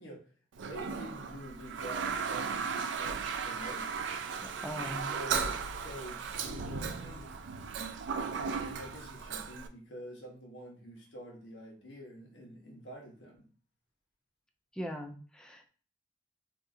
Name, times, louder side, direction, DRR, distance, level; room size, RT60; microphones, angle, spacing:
voice 1, 0.0-4.0 5.0-7.4 8.3-13.5, equal, 85° left, 1.0 m, -47 dB
Toilet flush, 0.5-9.7, right 5 dB, 85° right, 0.4 m, -36 dB
voice 2, 4.4-5.1 14.7-15.7, equal, 5° left, 0.4 m, -40 dB
2.6 x 2.4 x 4.0 m
head